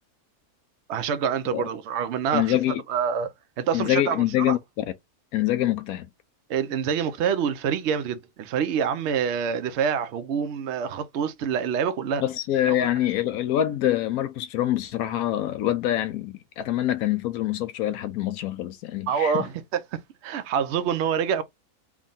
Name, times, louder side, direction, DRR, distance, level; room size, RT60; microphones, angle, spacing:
voice 1, 0.9-2.6 2.9-3.3 3.6-4.6 6.5-12.2 12.7-12.9 19.1-21.4, right 7 dB, 65° right, 0.7 m, -26 dB
voice 2, 2.3-2.8 3.7-4.8 5.3-6.1 12.2-19.5, left 13 dB, 75° left, 1.0 m, -25 dB
3.6 x 2.3 x 3.9 m
omnidirectional pair, 1.6 m